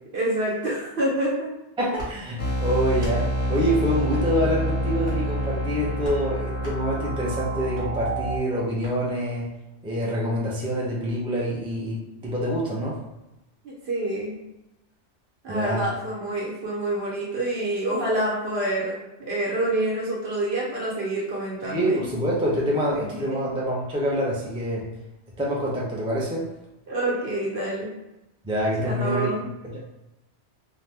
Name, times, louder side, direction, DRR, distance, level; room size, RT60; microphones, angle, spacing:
voice 1, 0.1-1.5 13.6-14.4 15.4-22.1 22.9-23.4 26.9-27.9 28.8-29.5, right 1 dB, 60° right, -5 dB, 1.2 m, -27 dB
voice 2, 1.8-9.5 9.8-13.0 15.5-15.8 21.6-24.9 25.4-26.5 28.4-29.3 29.6-29.8, equal, 10° right, -5 dB, 0.3 m, -26 dB
sound 1, 1.9-2.1 2.9-3.2 4.1-4.3 5.0-5.3 6.0-6.2 6.6-6.8 7.7-7.9 8.8-9.0, left 1 dB, 30° right, 1.0 m, -38 dB
sound 2, 2.4-8.4, equal, 55° left, 0.6 m, -27 dB
2.8 x 2.1 x 3.3 m, 0.96 s
omnidirectional pair, 1.2 m